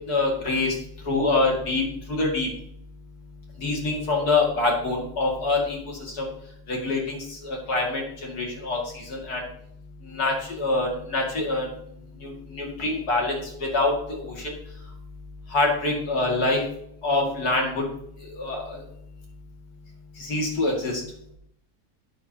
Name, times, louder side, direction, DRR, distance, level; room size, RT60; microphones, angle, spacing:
voice 1, 0.1-0.7 1.1-2.5 3.6-5.8 6.2-6.3 6.7-9.4 10.1-11.7 12.2-14.5 15.5-16.6 17.0-17.8 18.4-18.8 20.2-21.0, left 2 dB, 80° left, -1 dB, 2.9 m, -25 dB
11.5 x 8.1 x 2.9 m, 0.71 s
omnidirectional pair, 1.6 m